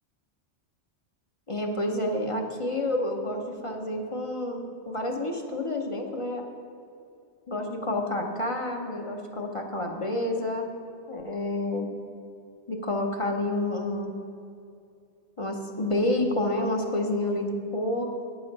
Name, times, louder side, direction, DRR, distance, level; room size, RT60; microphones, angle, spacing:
voice 1, 1.5-6.4 7.5-10.7 11.1-11.9 12.7-14.1 15.4-18.2, left 1 dB, 35° left, 1 dB, 0.7 m, -29 dB
9.5 x 5.9 x 5.3 m, 2.5 s
omnidirectional pair, 1.1 m